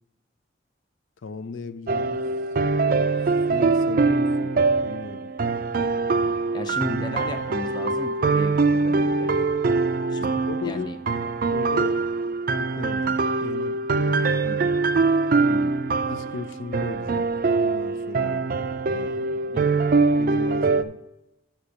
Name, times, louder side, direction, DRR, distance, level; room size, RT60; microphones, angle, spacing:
voice 1, 1.2-2.3 3.5-4.6 4.8-5.3 10.3-10.9 11.5-12.0 12.5-14.4 16.1-17.3 17.6-18.6 18.9-19.6 20.2-21.0, left 4 dB, 85° left, 11 dB, 0.5 m, -36 dB
sound 1, 1.9-20.8, right 3 dB, 45° right, 0.4 m, -23 dB
voice 2, 6.5-9.3 10.1-10.3 10.6-11.0 14.4-14.7 15.5-15.8 19.5-19.8, left 2 dB, 20° left, 7 dB, 0.5 m, -35 dB
6.5 x 6.0 x 5.6 m, 0.92 s
head